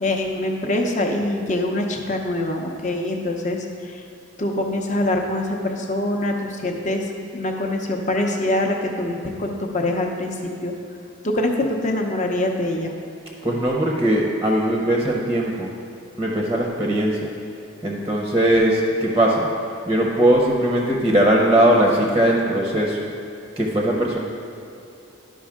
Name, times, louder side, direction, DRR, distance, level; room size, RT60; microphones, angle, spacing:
voice 1, 0.0-4.0 4.4-7.1 7.3-10.7 11.2-12.9, left 1 dB, 35° left, 2 dB, 0.7 m, -24 dB
voice 2, 13.4-15.7 16.2-17.3 17.8-19.5 19.9-23.1 23.6-24.2, right 1 dB, 15° right, -1 dB, 0.7 m, -19 dB
11.5 x 5.2 x 3.6 m, 2.6 s
head